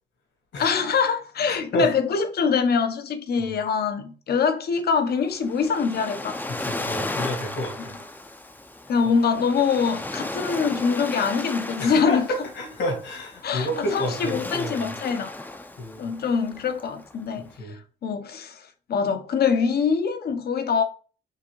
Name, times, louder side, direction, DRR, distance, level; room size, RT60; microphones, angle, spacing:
voice 1, 0.6-6.4 8.9-12.2 13.4-15.3 16.0-20.8, left 6 dB, 55° left, 0.7 m, -24 dB
voice 2, 1.5-1.9 6.6-7.9 11.8-14.9 15.8-16.1 17.6-17.7, left 1 dB, 70° left, 1.7 m, -30 dB
Waves surf, 5.1-17.5, left 2 dB, 10° left, 0.5 m, -35 dB
4.7 x 2.7 x 3.0 m
cardioid pair, 90°, 20 cm